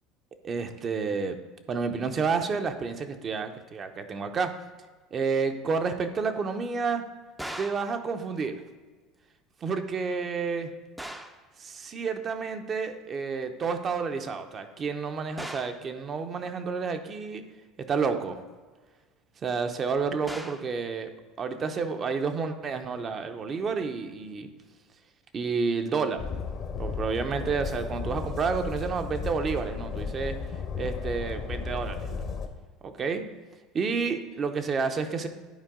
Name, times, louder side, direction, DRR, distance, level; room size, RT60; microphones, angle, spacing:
voice 1, 0.4-1.4 1.7-4.5 5.1-7.0 7.6-8.6 9.6-10.7 11.6-17.4 17.8-18.4 19.4-21.1 21.4-24.5 25.3-26.3 26.8-30.4 30.8-32.1 32.8-33.2 33.7-35.3, right 5 dB, 35° right, 7 dB, 0.7 m, -30 dB
sound 1, 7.4-7.9 11.0-11.5 15.4-15.9 20.3-20.7, right 1 dB, 5° right, 0.6 m, -39 dB
Train, 26.2-32.5, left 5 dB, 50° left, 0.9 m, -34 dB
10.5 x 4.6 x 3.7 m, 1.4 s
hypercardioid pair, 90°, 0 cm